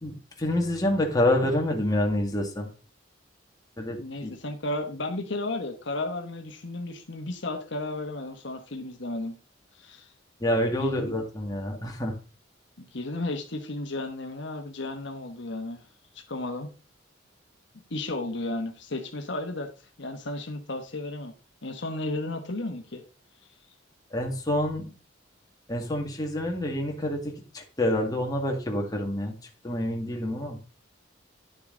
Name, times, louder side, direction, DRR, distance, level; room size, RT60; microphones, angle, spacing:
voice 1, 0.0-2.7 3.8-4.3 10.4-12.1 24.1-24.9 25.7-29.3 29.6-30.6, left 1 dB, 20° left, 1 dB, 2.0 m, -27 dB
voice 2, 4.0-9.4 9.7-10.1 10.8-11.2 12.8-15.8 16.1-16.7 17.9-19.7 20.0-21.3 21.6-23.0, left 2 dB, 65° left, 5 dB, 1.3 m, -33 dB
10.5 x 6.7 x 3.8 m, 0.35 s
head